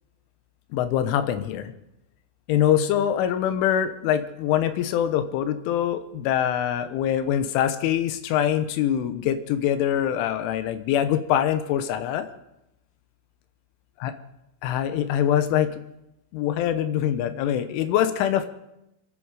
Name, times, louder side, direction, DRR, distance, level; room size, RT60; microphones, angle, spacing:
voice 1, 0.7-1.7 2.5-12.3 14.0-14.1 14.6-15.8 16.3-18.5, left 10 dB, 80° left, 10 dB, 3.4 m, -24 dB
27.0 x 11.0 x 4.9 m, 0.86 s
omnidirectional pair, 5.7 m